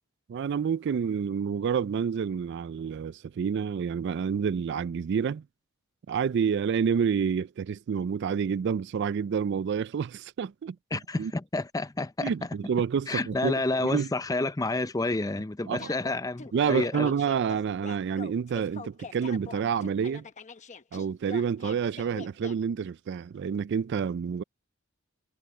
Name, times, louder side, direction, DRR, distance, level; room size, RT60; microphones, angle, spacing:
voice 1, 0.3-5.4 6.1-10.8 11.2-11.3 12.2-14.1 15.7-15.9 16.5-20.3 20.9-24.4, right 7 dB, 55° right, 0.3 m, -28 dB
voice 2, 10.9-12.3 13.1-17.1, left 2 dB, 15° left, 0.5 m, -29 dB
sound 1, 15.8-22.5, left 4 dB, 35° left, 1.0 m, -44 dB
head